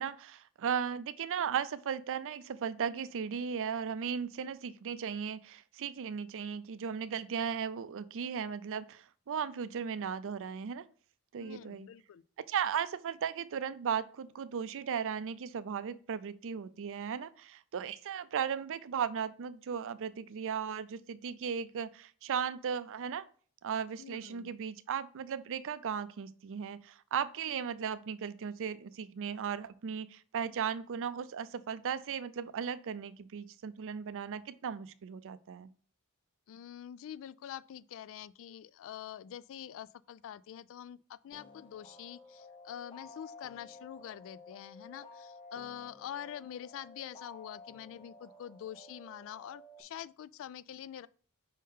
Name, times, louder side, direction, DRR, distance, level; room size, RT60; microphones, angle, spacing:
voice 1, 0.0-10.8 11.3-11.9 12.5-23.3 23.6-35.7, right 7 dB, 60° right, 0.4 m, -36 dB
voice 2, 11.4-12.2 24.0-24.5 36.5-51.1, left 10 dB, 60° left, 0.3 m, -45 dB
sound 1, 41.3-49.8, left 3 dB, 25° left, 0.8 m, -53 dB
5.4 x 3.7 x 5.5 m
head